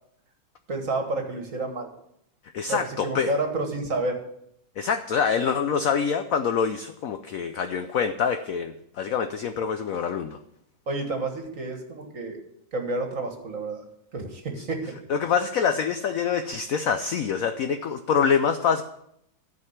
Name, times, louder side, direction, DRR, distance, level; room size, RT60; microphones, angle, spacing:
voice 1, 0.7-1.9 2.7-4.2 10.9-12.4 12.7-13.8 14.1-14.9, right 2 dB, 45° right, 3 dB, 1.9 m, -30 dB
voice 2, 2.5-3.3 4.8-10.4 15.1-18.8, left 6 dB, 75° left, 9 dB, 0.7 m, -25 dB
13.0 x 5.2 x 7.2 m, 0.75 s
omnidirectional pair, 2.1 m